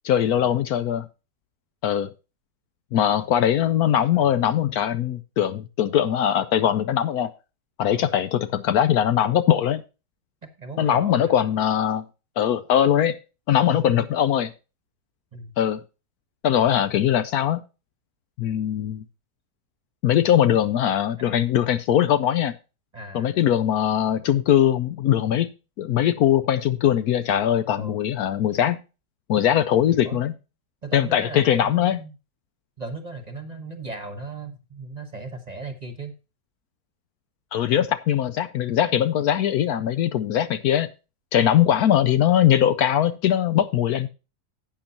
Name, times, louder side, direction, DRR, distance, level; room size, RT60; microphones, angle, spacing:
voice 1, 0.0-1.1 1.8-2.1 2.9-7.3 7.8-9.8 10.8-12.0 12.4-13.2 13.5-14.5 15.6-15.8 16.4-17.6 18.4-19.0 20.0-22.5 23.1-25.5 25.8-28.8 29.3-30.3 30.9-32.0 37.5-40.9 41.3-44.1, left 10 dB, 70° left, 1.0 m, -21 dB
voice 2, 10.6-11.3 13.7-14.1 15.3-15.6 20.3-20.6 22.9-23.4 27.8-28.0 30.0-30.2 30.8-32.1 32.8-36.1 41.4-41.7, right 3 dB, 25° right, 1.1 m, -37 dB
11.5 x 8.7 x 2.8 m
omnidirectional pair, 1.8 m